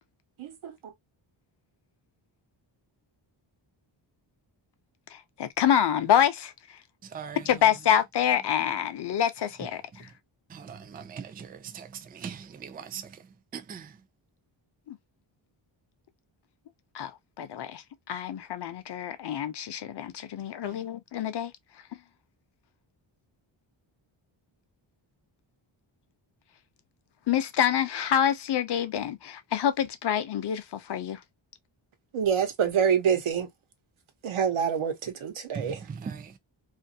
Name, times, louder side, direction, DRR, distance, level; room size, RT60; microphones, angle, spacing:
voice 1, 0.4-0.9 32.1-33.5 34.2-35.8, right 7 dB, 80° right, 1.0 m, -26 dB
voice 2, 5.1-6.5 7.4-10.1 14.9-15.0 16.9-17.1 17.4-21.5 27.3-31.2, left 9 dB, 60° left, 0.6 m, -27 dB
voice 3, 10.5-11.5 11.7-11.9 12.2-12.3 12.9-13.0 13.7-13.8 35.6-36.4, right 6 dB, 20° right, 0.3 m, -38 dB
2.5 x 2.5 x 2.6 m
wide cardioid pair, 150°, 48 cm